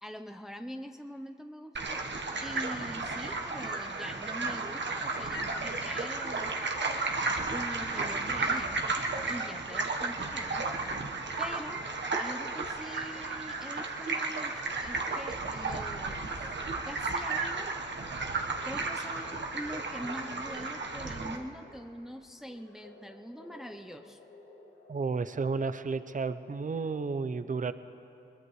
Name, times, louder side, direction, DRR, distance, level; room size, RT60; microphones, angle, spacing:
voice 1, 0.0-6.6 7.5-8.8 9.3-10.7 11.4-11.9 12.2-16.2 16.8-17.7 18.6-24.2, equal, ahead, 6 dB, 0.7 m, -43 dB
sound 1, 1.8-21.4, right 3 dB, 60° right, 1.2 m, -33 dB
sound 2, 18.1-26.5, left 2 dB, 85° left, 1.7 m, -55 dB
voice 2, 24.9-27.7, right 4 dB, 40° right, 12 dB, 0.6 m, -32 dB
21.5 x 21.0 x 3.2 m, 2.7 s
cardioid pair, 45°, 20 cm